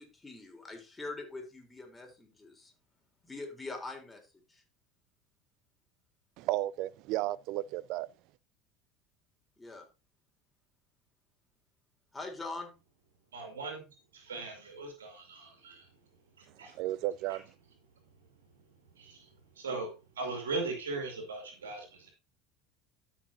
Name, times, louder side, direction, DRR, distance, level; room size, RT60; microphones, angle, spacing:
voice 1, 0.0-2.7 3.2-4.2 4.5-4.6 9.6-9.8 12.1-12.7, left 3 dB, 15° left, 3.5 m, -43 dB
voice 2, 6.4-8.1 16.7-17.4, right 16 dB, 60° right, 0.4 m, -33 dB
voice 3, 13.3-13.8 14.1-15.9 16.4-16.8 17.3-17.4 18.7-22.1, right 3 dB, 85° right, 2.5 m, -39 dB
13.5 x 6.1 x 2.7 m
hypercardioid pair, 75°, 0 cm